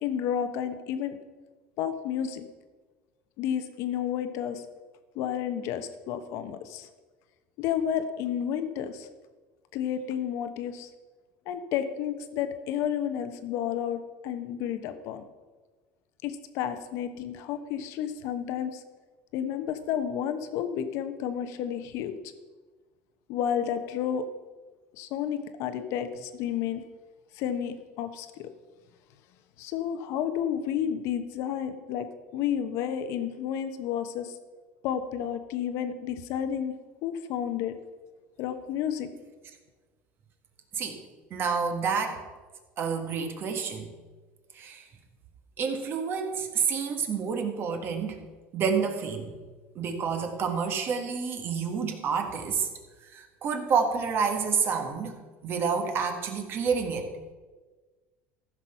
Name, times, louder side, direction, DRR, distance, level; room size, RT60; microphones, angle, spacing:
voice 1, 0.0-1.2 1.8-2.5 3.4-4.6 5.1-6.9 7.6-9.1 9.7-10.9 11.5-15.2 16.2-18.8 19.3-22.1 23.3-24.3 24.9-26.8 27.3-28.5 29.6-32.1 32.3-34.3 34.8-36.7 37.0-37.7 38.4-39.1, left 9 dB, 65° left, 9 dB, 1.1 m, -31 dB
voice 2, 41.3-42.2 42.8-43.9 44.5-44.8 45.6-48.2 48.5-49.3 49.8-52.7 53.1-55.2 55.4-57.1, right 6 dB, 45° right, 5 dB, 1.7 m, -29 dB
14.5 x 6.0 x 5.7 m, 1.3 s
supercardioid pair, 115°, 5 cm